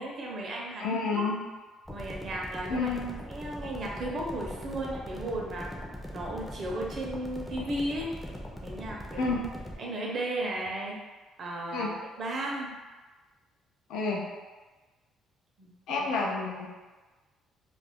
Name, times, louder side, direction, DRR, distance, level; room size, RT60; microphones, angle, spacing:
voice 1, 0.0-0.9 1.1-1.3 1.9-2.9 3.3-5.7 6.1-8.2 8.6-9.4 9.8-11.0 11.4-11.9 12.2-12.7 15.6-15.7 16.0-16.1, right 1 dB, 50° right, -1 dB, 0.6 m, -34 dB
voice 2, 0.8-1.4 2.7-3.1 9.2-9.4 11.7-11.9 13.9-14.2 15.9-16.7, left 4 dB, 80° left, -2 dB, 0.5 m, -29 dB
sound 1, 1.9-9.8, equal, 10° left, 0.4 m, -41 dB
2.3 x 2.0 x 3.4 m, 1.3 s
cardioid pair, 110°, 0 cm